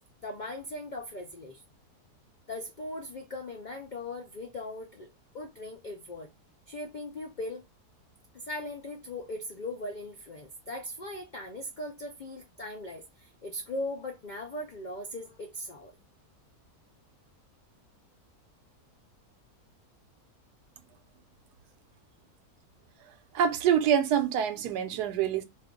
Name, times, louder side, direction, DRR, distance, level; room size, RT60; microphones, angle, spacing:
voice 1, 0.2-1.6 2.5-5.1 5.3-6.3 6.7-7.7 8.3-15.9, left 1 dB, 70° left, 0.4 m, -39 dB
voice 2, 23.3-25.4, right 9 dB, 90° right, 1.2 m, -25 dB
2.6 x 2.4 x 3.6 m
omnidirectional pair, 1.7 m